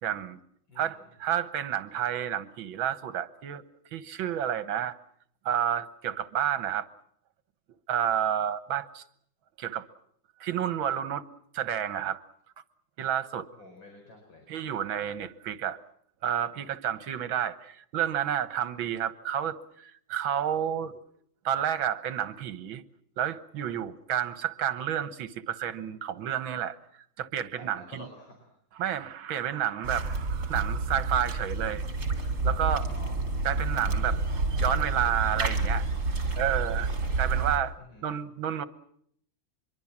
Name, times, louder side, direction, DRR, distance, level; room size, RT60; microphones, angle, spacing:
voice 1, 0.0-0.4 0.8-3.6 3.9-5.0 5.5-6.9 7.9-9.0 9.6-9.9 10.4-11.2 11.5-12.2 13.0-13.5 14.5-15.8 16.2-21.0 21.5-22.8 23.2-26.8 27.2-28.1 28.7-31.8 32.4-32.9 33.4-34.2 34.6-35.9 36.4-36.9 37.2-37.7 38.0-38.7, right 10 dB, 75° right, 1.9 m, -30 dB
voice 2, 13.5-14.4 27.6-28.5 32.7-33.1 37.9-38.0, left 1 dB, 70° left, 5.8 m, -49 dB
sound 1, 29.8-37.6, right 3 dB, 50° right, 3.3 m, -29 dB
25.0 x 23.0 x 7.3 m
omnidirectional pair, 2.2 m